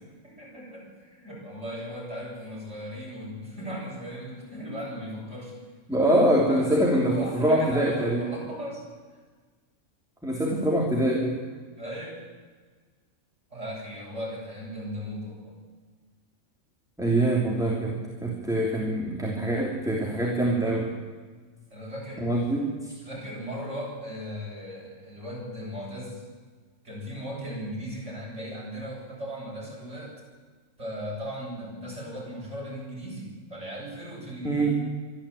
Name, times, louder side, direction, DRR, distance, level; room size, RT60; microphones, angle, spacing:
voice 1, 0.2-5.6 6.1-6.2 6.5-8.8 11.8-12.2 13.5-15.6 21.7-22.3 23.0-26.2 26.8-30.2 30.8-34.7, equal, 60° right, -4 dB, 8.1 m, -37 dB
voice 2, 5.9-8.2 10.2-11.4 17.0-17.9 18.2-20.9 22.2-22.9 34.4-34.8, right 1 dB, ahead, -2 dB, 3.1 m, -24 dB
23.5 x 13.5 x 8.6 m, 1.4 s
omnidirectional pair, 1.4 m